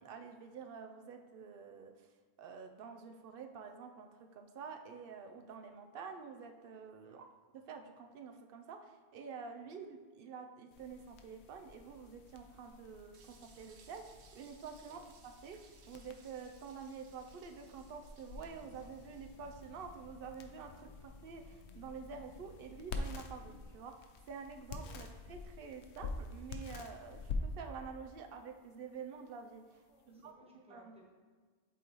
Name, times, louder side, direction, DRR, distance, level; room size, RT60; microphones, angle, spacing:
voice 1, 0.0-2.1 2.4-7.3 7.5-29.8 30.1-30.3 30.7-30.9, right 5 dB, 65° right, 5 dB, 0.7 m, -48 dB
sound 1, 10.7-30.3, left 3 dB, 80° left, 0.9 m, -47 dB
sound 2, 13.1-20.0, right 5 dB, 85° right, 0.9 m, -65 dB
voice 2, 29.9-31.1, right 1 dB, 5° right, -3 dB, 1.0 m, -63 dB
8.3 x 4.0 x 3.0 m, 1.5 s
omnidirectional pair, 1.1 m